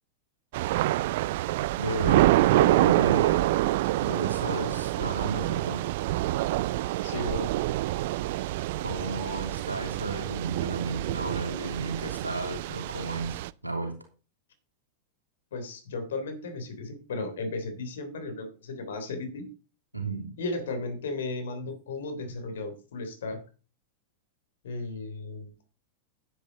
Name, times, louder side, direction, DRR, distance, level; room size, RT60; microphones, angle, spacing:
Thunder / Rain, 0.5-13.5, right 16 dB, 50° right, 0.4 m, -26 dB
voice 1, 1.8-3.5 4.0-5.8 8.8-13.9 19.9-20.3, right 2 dB, 85° right, 3 dB, 3.0 m, -33 dB
voice 2, 7.0-7.5 15.5-19.5 20.4-23.4 24.6-25.5, left 2 dB, 60° left, 8 dB, 3.4 m, -35 dB
10.5 x 10.0 x 4.1 m, 0.35 s
figure-of-eight pair, 90°, 0 cm